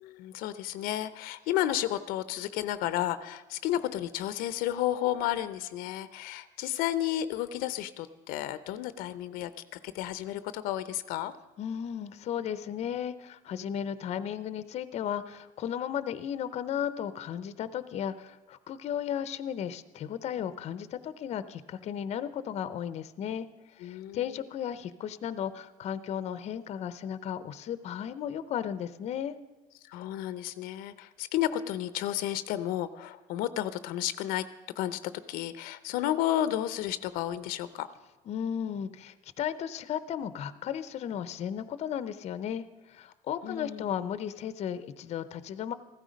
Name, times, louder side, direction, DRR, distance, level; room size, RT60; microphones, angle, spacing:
voice 1, 0.0-9.5 9.8-11.3 23.8-24.3 29.9-34.4 34.8-37.9 43.4-43.9, left 12 dB, 80° left, 14 dB, 0.7 m, -32 dB
voice 2, 11.6-23.5 23.8-29.3 38.3-45.7, left 9 dB, 45° left, 14 dB, 0.7 m, -35 dB
15.0 x 13.5 x 5.2 m, 1.1 s
cardioid pair, 135°, 15 cm